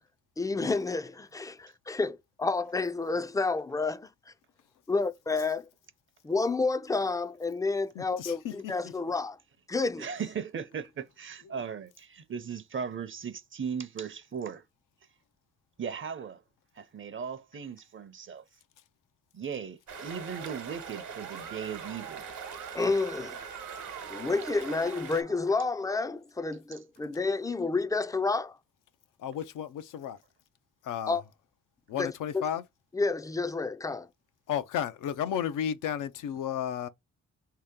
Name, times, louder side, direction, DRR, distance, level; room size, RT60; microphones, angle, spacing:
voice 1, 0.4-4.3 4.9-5.7 6.2-9.4 9.7-10.1 22.7-23.4 24.1-28.6 31.1-31.2 31.9-32.4 32.9-34.1, left 3 dB, 10° left, 0.3 m, -30 dB
voice 2, 8.0-8.7 29.2-30.2 30.8-31.2 31.9-32.6 34.5-36.9, left 9 dB, 85° left, 0.5 m, -33 dB
voice 3, 10.0-14.6 15.8-16.4 16.8-18.4 19.3-22.3, right 7 dB, 40° right, 0.6 m, -37 dB
sound 1, 19.9-25.2, right 5 dB, 65° right, 1.1 m, -42 dB
Musical instrument, 20.1-25.7, right 11 dB, 90° right, 0.5 m, -48 dB
3.1 x 2.9 x 3.6 m
cardioid pair, 70°, 31 cm